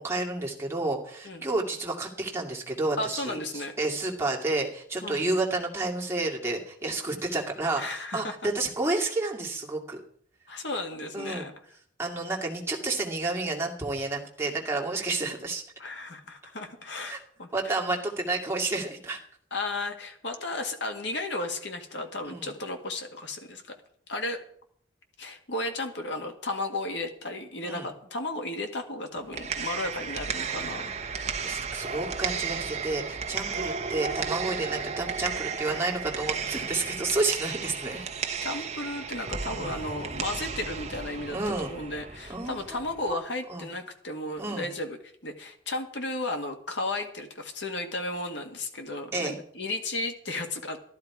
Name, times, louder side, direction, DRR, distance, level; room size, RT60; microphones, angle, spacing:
voice 1, 0.0-10.0 11.1-11.4 12.0-15.6 17.1-17.2 17.5-19.2 22.2-22.5 27.6-27.9 31.4-38.0 41.3-41.7 42.3-42.8 43.1-43.2 43.5-43.7 44.4-44.7 49.1-49.4, right 2 dB, 15° right, -2 dB, 2.2 m, -30 dB
voice 2, 3.0-3.7 5.0-5.3 7.8-8.3 10.5-11.5 15.8-17.8 19.5-23.8 24.1-24.4 25.2-31.3 33.5-33.6 38.4-50.8, left 2 dB, 70° left, 4 dB, 1.8 m, -34 dB
sound 1, 29.1-43.1, right 6 dB, 35° right, 0.9 m, -34 dB
13.5 x 13.0 x 4.8 m, 0.63 s
head